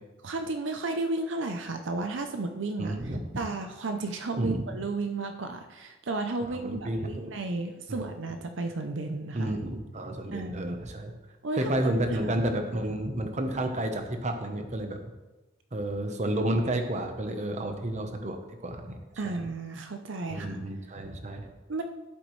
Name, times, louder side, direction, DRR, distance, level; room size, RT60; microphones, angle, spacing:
voice 1, 0.2-3.0 3.4-9.5 10.3-10.8 11.4-11.7 12.2-12.3 19.2-20.6 21.7-21.8, right 3 dB, 75° right, 6 dB, 0.6 m, -33 dB
voice 2, 2.8-3.2 4.4-4.6 6.4-7.3 7.9-8.0 9.3-11.2 11.5-15.0 15.7-19.5 20.3-21.5, right 1 dB, 35° right, 5 dB, 1.0 m, -31 dB
11.0 x 8.1 x 3.2 m, 1.1 s
head